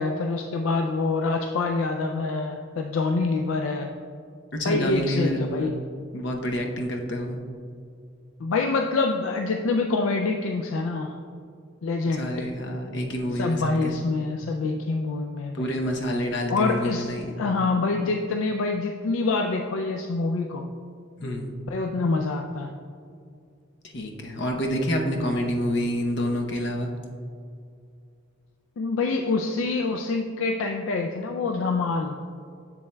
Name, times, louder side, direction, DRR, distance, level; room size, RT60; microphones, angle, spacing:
voice 1, 0.0-3.9 4.6-5.8 8.4-11.2 11.8-12.5 13.4-15.8 16.5-17.1 17.4-20.7 21.7-22.7 28.8-32.2, left 3 dB, 75° left, 4 dB, 0.4 m, -26 dB
voice 2, 4.5-5.7 6.1-7.4 12.0-14.1 15.5-17.3 21.2-21.5 23.9-26.9, equal, 60° left, 2 dB, 0.8 m, -28 dB
7.6 x 7.0 x 2.2 m, 2.3 s
head